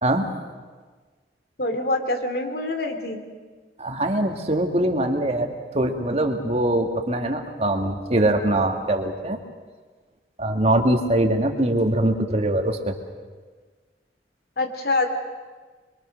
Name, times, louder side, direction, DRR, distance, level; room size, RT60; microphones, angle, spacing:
voice 1, 1.6-3.2 14.6-15.1, left 2 dB, 60° left, 6 dB, 2.6 m, -25 dB
voice 2, 3.8-9.4 10.4-13.0, right 1 dB, 35° right, 4 dB, 2.1 m, -22 dB
26.0 x 24.0 x 6.5 m, 1.4 s
head